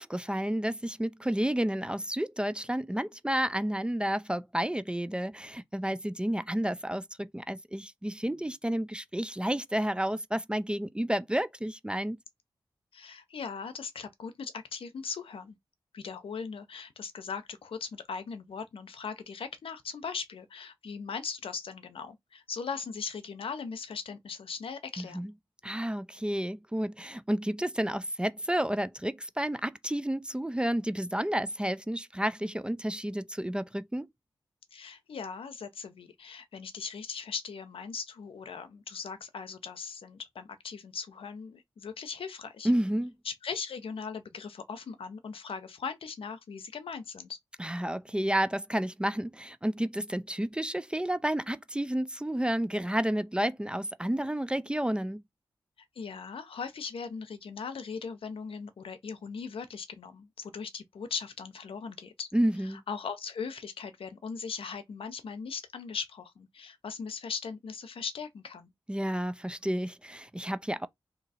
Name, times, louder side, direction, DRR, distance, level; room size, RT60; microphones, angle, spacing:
voice 1, 0.0-12.2 25.0-25.3 25.6-34.1 42.6-43.1 47.6-55.2 62.3-62.8 68.9-70.9, right 1 dB, 10° right, 0.3 m, -31 dB
voice 2, 12.9-15.5 15.9-25.3 34.7-42.7 43.2-47.4 55.9-62.3 62.6-68.7, left 5 dB, 80° left, 0.6 m, -39 dB
2.8 x 2.4 x 4.1 m
cardioid pair, 50°, 9 cm